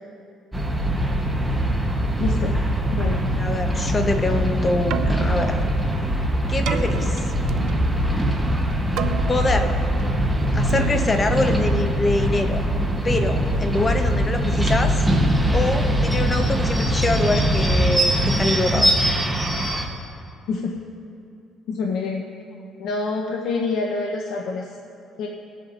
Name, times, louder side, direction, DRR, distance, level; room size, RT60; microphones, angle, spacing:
sound 1, 0.5-19.9, equal, 5° right, 0.9 m, -22 dB
voice 1, 2.2-2.5 2.9-3.2 20.5-20.7 21.7-22.3 22.8-24.8 25.2-25.3, left 4 dB, 75° left, 0 dB, 0.8 m, -26 dB
voice 2, 3.1-5.6 6.5-7.3 9.3-9.8 10.5-12.6 13.0-15.0 15.5-18.9, left 2 dB, 25° left, 6 dB, 0.8 m, -24 dB
Keyboard (musical), 4.7-12.9, right 8 dB, 70° right, 0.4 m, -33 dB
20.0 x 7.9 x 2.5 m, 2.5 s
cardioid pair, 130°, 0 cm